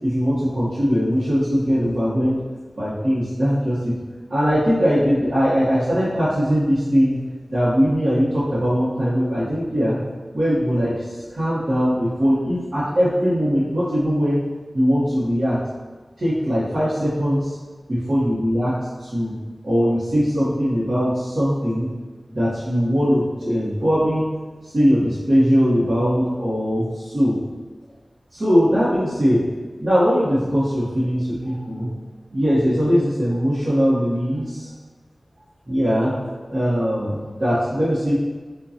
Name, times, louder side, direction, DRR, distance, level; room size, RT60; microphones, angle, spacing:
voice 1, 0.0-2.4 2.8-3.9 4.3-7.2 7.5-10.0 10.3-14.4 14.7-15.6 16.2-17.5 18.1-18.7 19.0-19.3 19.6-21.9 22.3-24.2 24.7-27.4 28.3-29.4 29.8-31.9 32.3-34.7 35.7-36.2 36.5-38.1, equal, 65° right, -12 dB, 1.0 m, -20 dB
5.2 x 2.2 x 2.7 m, 1.4 s
wide cardioid pair, 55°, 0 cm